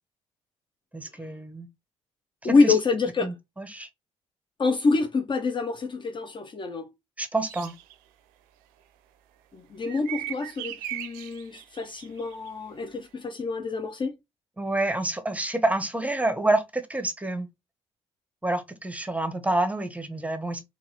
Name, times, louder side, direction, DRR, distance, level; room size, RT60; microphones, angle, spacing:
voice 1, 0.9-1.7 2.4-2.8 3.2-3.9 7.2-7.7 14.6-17.5 18.4-20.6, right 2 dB, 10° right, 0.8 m, -28 dB
voice 2, 2.4-3.3 4.6-6.9 9.5-14.1, left 4 dB, 30° left, 0.6 m, -26 dB
sound 1, 7.5-7.9 9.9-12.5, right 13 dB, 65° right, 0.4 m, -37 dB
3.9 x 2.3 x 2.9 m
figure-of-eight pair, 45°, 15 cm